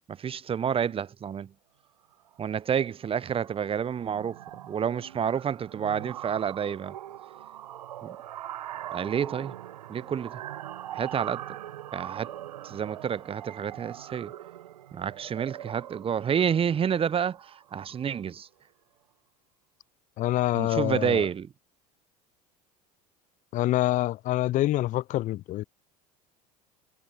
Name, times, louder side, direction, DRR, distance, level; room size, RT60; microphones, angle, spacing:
voice 1, 0.1-1.5 2.4-6.9 8.0-8.2 8.9-9.5 9.9-10.4 10.9-11.4 11.9-12.3 12.6-14.3 14.9-18.5 20.5-21.5, right 8 dB, 25° right, 0.8 m, -29 dB
sound 1, 2.1-2.4 2.7-3.0 3.3-18.1, right 12 dB, 80° right, 0.9 m, -42 dB
voice 2, 20.2-21.3 23.5-25.6, left 15 dB, 40° left, 0.5 m, -26 dB
hypercardioid pair, 75°, 20 cm